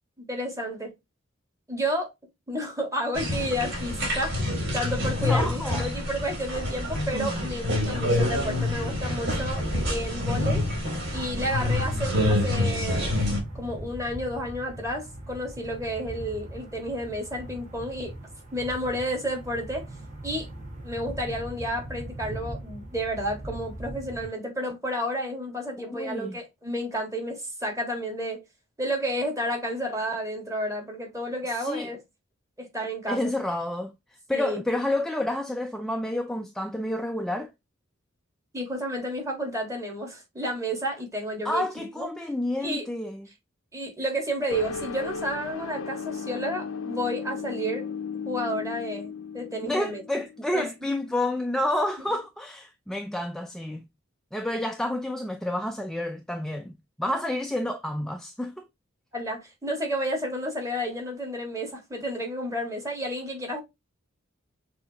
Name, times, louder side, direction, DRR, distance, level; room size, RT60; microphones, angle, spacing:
voice 1, 0.2-0.9 1.7-2.1 2.5-10.6 11.1-13.1 13.5-18.1 18.5-19.9 20.2-20.5 20.8-28.4 28.8-32.0 32.6-33.2 34.3-34.6 38.5-41.6 42.0-42.1 42.6-42.8 43.7-47.9 48.2-50.0 50.5-50.7 59.1-63.6, equal, 15° right, 1.6 m, -31 dB
sound 1, 3.1-13.4, left 1 dB, 60° right, 2.8 m, -27 dB
voice 2, 5.2-5.9 25.8-26.4 31.5-31.9 33.1-33.9 34.3-37.5 41.4-43.3 49.6-53.8 54.3-58.7, left 1 dB, 5° left, 0.3 m, -29 dB
sound 2, 8.7-24.3, right 1 dB, 40° right, 1.6 m, -40 dB
sound 3, 44.5-50.9, left 5 dB, 90° left, 0.6 m, -35 dB
6.4 x 2.8 x 2.7 m
head